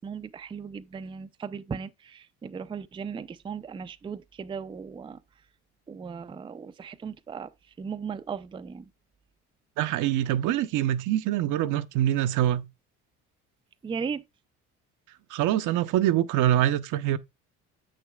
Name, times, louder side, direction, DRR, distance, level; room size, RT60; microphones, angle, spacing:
voice 1, 0.0-5.2 5.9-7.5 7.8-8.9 13.8-14.2, right 6 dB, 15° right, 0.4 m, -37 dB
voice 2, 9.8-12.6 15.3-17.2, right 12 dB, 70° right, 0.7 m, -24 dB
7.8 x 6.4 x 2.3 m
supercardioid pair, 75°, 32 cm